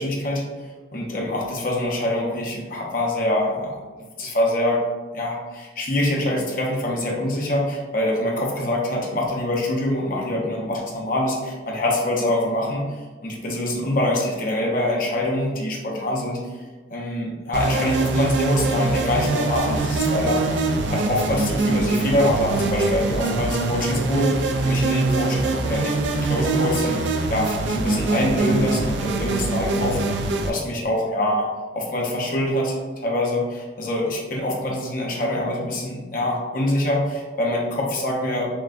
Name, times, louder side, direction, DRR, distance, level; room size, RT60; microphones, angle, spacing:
voice 1, 0.0-3.7 4.2-4.8 5.1-16.4 16.9-20.4 20.9-27.0 27.3-31.5 31.7-38.5, left 1 dB, 45° left, -2 dB, 0.7 m, -25 dB
sound 1, 17.5-30.5, right 3 dB, 70° right, 0.4 m, -23 dB
5.9 x 2.2 x 2.5 m, 1.4 s
head